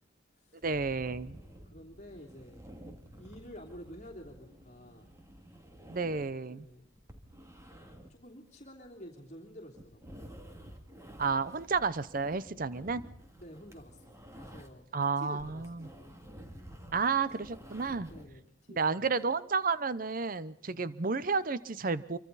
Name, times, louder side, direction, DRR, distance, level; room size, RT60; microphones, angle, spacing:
sound 1, 0.6-14.9 15.2-18.3, equal, 15° right, 2.5 m, -51 dB
voice 1, 0.6-1.4 5.9-6.7 11.2-13.0 14.9-15.9 16.9-18.1 18.7-22.2, right 4 dB, 45° right, 15 dB, 0.8 m, -31 dB
voice 2, 1.2-2.6 3.2-5.1 6.5-6.9 8.1-10.3 13.4-16.1 18.1-19.1 20.7-21.0, equal, 40° left, 0 dB, 3.0 m, -50 dB
26.0 x 24.5 x 4.1 m, 0.64 s
head